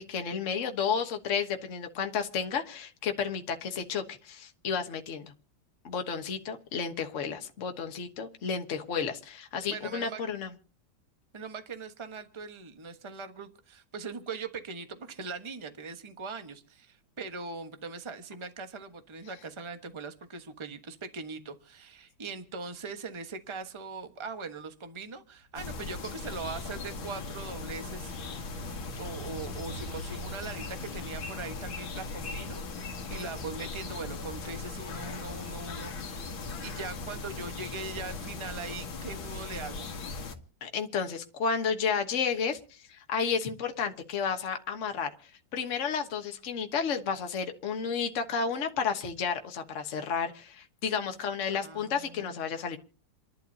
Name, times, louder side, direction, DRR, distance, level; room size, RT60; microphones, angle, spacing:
voice 1, 0.0-5.3 5.8-10.5 40.6-45.1 45.5-52.8, left 6 dB, 45° left, 1.5 m, -32 dB
voice 2, 9.7-10.2 11.3-28.1 29.0-32.6 33.1-36.3 36.6-39.9 51.5-52.4, right 4 dB, 20° right, 1.0 m, -41 dB
sound 1, 25.2-34.2 34.6-35.0, right 1 dB, 85° right, 6.5 m, -48 dB
sound 2, 25.6-40.4, left 4 dB, 85° left, 2.3 m, -39 dB
29.0 x 11.5 x 2.8 m
omnidirectional pair, 2.1 m